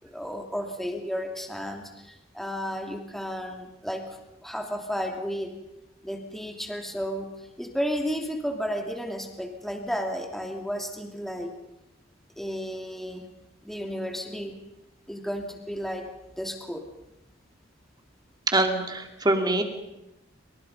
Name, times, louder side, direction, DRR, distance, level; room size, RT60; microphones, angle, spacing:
voice 1, 0.0-4.2 4.4-5.5 6.0-7.3 7.6-11.5 12.4-13.3 13.6-14.5 15.1-16.1 16.4-16.9, equal, ahead, 2 dB, 2.8 m, -33 dB
voice 2, 18.5-19.6, right 2 dB, 20° right, 4 dB, 2.9 m, -24 dB
27.5 x 26.0 x 5.5 m, 0.92 s
head